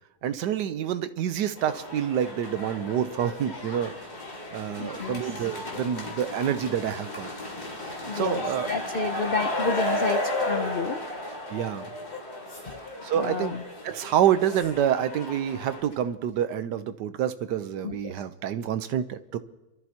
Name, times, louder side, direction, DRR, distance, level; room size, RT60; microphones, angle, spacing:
voice 1, 0.2-3.9 4.5-7.3 8.1-8.7 11.5-11.9 13.0-13.6 13.8-19.4, right 10 dB, 75° right, 11 dB, 1.3 m, -27 dB
sound 1, 1.6-15.8, left 1 dB, 35° left, 2.8 m, -34 dB
voice 2, 4.8-5.2 8.1-11.0 13.1-13.6 17.8-18.1, left 4 dB, 85° left, 6 dB, 0.4 m, -30 dB
sound 2, 12.4-13.4 14.3-14.8 15.0-15.5 15.8-16.0 16.3-16.6 17.5-17.6, left 1 dB, 65° left, 5.9 m, -52 dB
27.0 x 13.0 x 2.9 m, 1.0 s
omnidirectional pair, 1.9 m